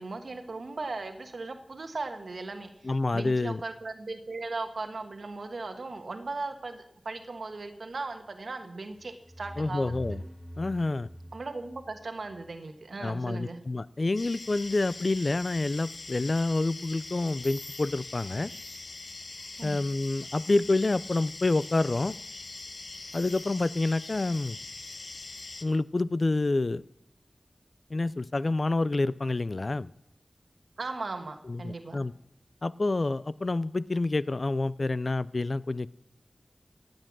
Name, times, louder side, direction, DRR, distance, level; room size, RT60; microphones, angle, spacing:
voice 1, 0.0-2.7 3.1-9.9 11.3-13.6 19.6-19.8 30.8-32.0, right 3 dB, 90° right, 6 dB, 1.3 m, -37 dB
voice 2, 2.8-3.6 9.6-10.2 10.6-11.1 13.0-18.5 19.6-22.2 23.1-24.6 25.6-26.8 27.9-29.9 31.5-32.1 32.6-35.9, left 2 dB, 60° left, 18 dB, 0.4 m, -28 dB
sound 1, 9.0-12.6, equal, 5° right, 3.1 m, -44 dB
sound 2, 14.1-25.6, left 3 dB, 80° left, 1.1 m, -42 dB
17.5 x 7.9 x 6.1 m, 0.81 s
wide cardioid pair, 45°, 0 cm